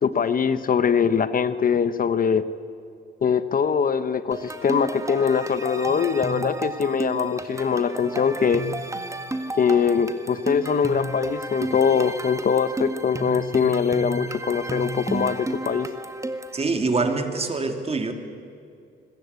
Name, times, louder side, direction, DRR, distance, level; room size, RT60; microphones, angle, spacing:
voice 1, 0.0-2.5 3.2-8.6 9.6-15.9, left 6 dB, 45° left, 13 dB, 1.1 m, -22 dB
sound 1, 4.3-16.6, right 2 dB, 15° right, 1.9 m, -32 dB
voice 2, 16.5-18.1, right 3 dB, 30° right, 6 dB, 3.1 m, -24 dB
25.0 x 21.5 x 8.4 m, 2.4 s
cardioid pair, 90°, 20 cm